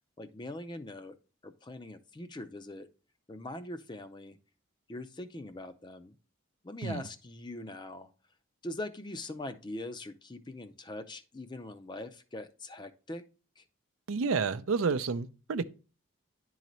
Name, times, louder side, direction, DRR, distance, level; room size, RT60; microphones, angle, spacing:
voice 1, 0.2-1.2 1.4-2.9 3.3-4.4 4.9-6.1 6.6-8.1 8.6-13.2 13.6-13.7, left 1 dB, 20° left, 0.5 m, -42 dB
voice 2, 14.1-15.6, right 4 dB, 80° right, 0.5 m, -30 dB
10.5 x 3.9 x 3.1 m
head